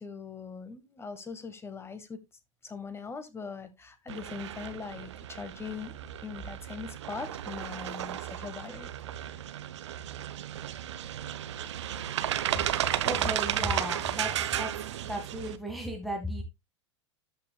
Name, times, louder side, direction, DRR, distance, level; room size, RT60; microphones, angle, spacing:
voice 1, 0.0-2.2 2.6-5.9 6.2-8.9, left 5 dB, 15° left, 10 dB, 1.6 m, -41 dB
sound 1, 4.1-15.6, right 11 dB, 65° right, 0.9 m, -34 dB
voice 2, 13.0-14.7 15.0-16.4, equal, ahead, 2 dB, 1.8 m, -35 dB
13.0 x 5.9 x 2.3 m, 0.22 s
figure-of-eight pair, 90°, 16 cm